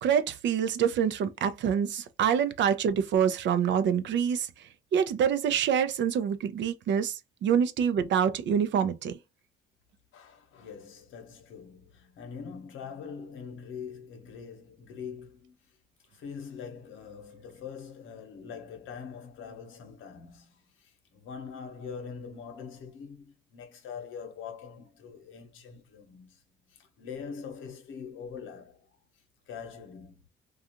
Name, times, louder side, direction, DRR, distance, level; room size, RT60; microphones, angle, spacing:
voice 1, 0.0-4.5 4.9-9.2, right 8 dB, 70° right, 0.5 m, -26 dB
voice 2, 10.1-15.8 16.1-26.4 26.7-28.9 29.1-30.2, left 6 dB, 85° left, 0.9 m, -43 dB
2.4 x 2.4 x 2.8 m
cardioid pair, 90°, 20 cm